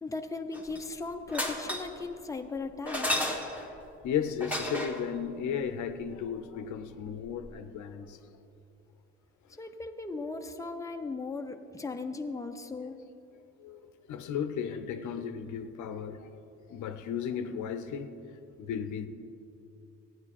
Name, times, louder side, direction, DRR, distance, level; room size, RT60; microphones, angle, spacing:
voice 1, 0.0-3.4 9.6-13.0, left 3 dB, 10° left, 4 dB, 0.7 m, -37 dB
sound 1, 0.5-0.9 1.3-2.0 2.9-3.7 4.4-5.1 7.2-7.3 7.4-7.5, left 1 dB, 5° right, 1.8 m, -32 dB
voice 2, 4.0-8.2 13.6-16.4 16.7-18.2 18.6-19.1, left 7 dB, 75° left, 9 dB, 0.7 m, -35 dB
14.5 x 9.5 x 4.2 m, 2.7 s
cardioid pair, 90°, 30 cm